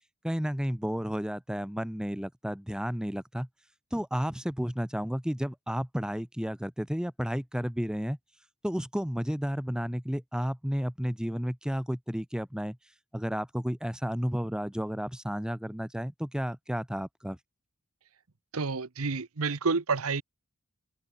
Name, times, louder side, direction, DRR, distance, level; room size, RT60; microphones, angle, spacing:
voice 1, 0.2-3.5 3.9-8.2 8.6-12.8 13.1-17.4, equal, 5° right, 1.2 m, -32 dB
voice 2, 18.5-20.2, right 4 dB, 75° right, 1.1 m, -29 dB
open air
head